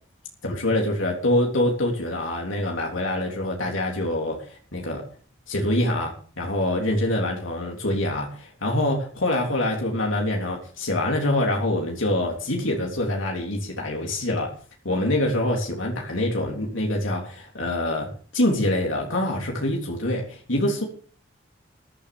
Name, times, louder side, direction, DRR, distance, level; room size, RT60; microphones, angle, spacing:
voice 1, 0.4-5.1 5.5-14.5 14.9-20.8, left 1 dB, 90° left, 0 dB, 3.5 m, -25 dB
13.5 x 10.5 x 6.7 m, 0.43 s
head